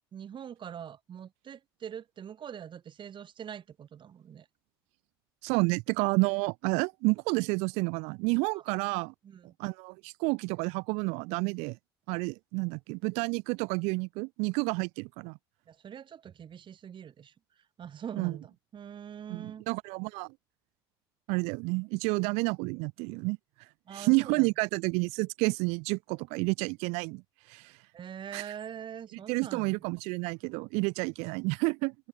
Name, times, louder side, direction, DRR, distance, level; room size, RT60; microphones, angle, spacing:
voice 1, 0.1-4.5 8.5-8.8 9.2-9.5 15.7-19.6 23.9-24.5 27.9-29.8, right 8 dB, 45° right, 2.1 m, -43 dB
voice 2, 5.4-9.1 9.6-11.8 12.1-15.4 18.2-18.4 19.3-20.3 21.3-23.4 23.9-27.2 27.5-27.7 28.3-28.5 29.3-31.9, right 29 dB, 75° right, 0.5 m, -30 dB
open air
hypercardioid pair, 70°, 11 cm